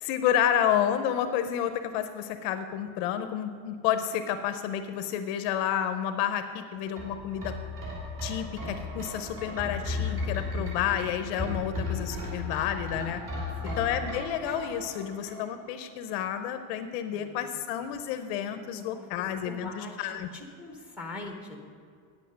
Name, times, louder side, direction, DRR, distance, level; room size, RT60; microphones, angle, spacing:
voice 1, 0.0-7.5 8.2-13.2 13.8-20.3, left 10 dB, 50° left, 9 dB, 0.6 m, -30 dB
sound 1, 7.0-15.8 16.1-16.2, left 3 dB, 30° right, 3.1 m, -35 dB
voice 2, 17.1-17.4 18.7-19.1 19.4-21.6, left 2 dB, 5° right, 2 dB, 0.8 m, -42 dB
9.5 x 8.0 x 6.3 m, 2.2 s
cardioid pair, 180°, 41 cm